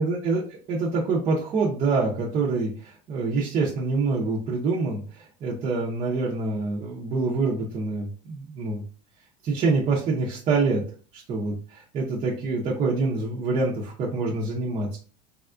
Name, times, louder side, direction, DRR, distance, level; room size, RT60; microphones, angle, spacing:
voice 1, 0.0-0.4 0.7-8.8 9.4-10.8 11.1-15.0, right 3 dB, 30° right, -5 dB, 0.6 m, -26 dB
3.4 x 2.2 x 2.4 m, 0.40 s
supercardioid pair, 150°, 21 cm